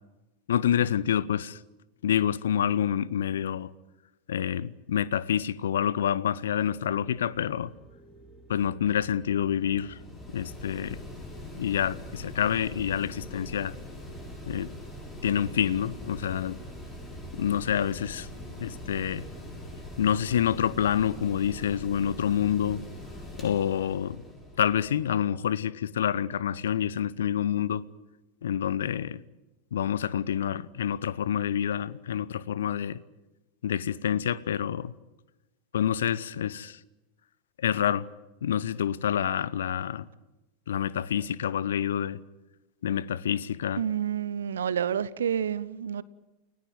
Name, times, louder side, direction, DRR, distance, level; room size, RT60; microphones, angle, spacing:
voice 1, 0.5-1.6 2.0-3.7 4.3-7.7 8.5-10.0 10.3-11.0 11.5-13.7 14.5-14.7 15.2-16.6 17.3-18.3 18.6-19.3 20.0-22.8 23.4-24.2 24.6-27.8 28.4-29.2 29.7-33.0 33.6-34.9 35.7-36.8 37.6-38.1 38.4-40.1 40.7-42.2 42.8-43.8, left 9 dB, 60° left, 0.8 m, -27 dB
horror atmosphere background, 6.6-18.7, right 2 dB, ahead, 2.5 m, -54 dB
Mechanical fan, 9.0-25.3, left 1 dB, 20° left, 7.8 m, -42 dB
voice 2, 43.8-46.0, right 8 dB, 65° right, 0.8 m, -29 dB
29.5 x 17.0 x 9.6 m
figure-of-eight pair, 90°, 0 cm